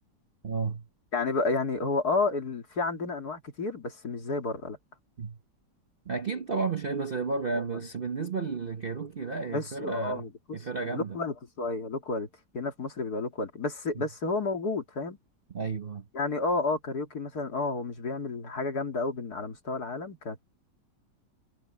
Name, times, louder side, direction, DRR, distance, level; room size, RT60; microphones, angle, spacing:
voice 1, 0.4-0.9 5.2-5.4 6.0-11.2 13.9-14.1 15.5-16.1, right 4 dB, 40° right, 0.9 m, -32 dB
voice 2, 1.1-4.8 7.5-7.6 9.5-10.6 10.9-12.3 12.5-15.2 16.1-20.4, left 3 dB, 55° left, 2.9 m, -31 dB
omnidirectional pair, 2.0 m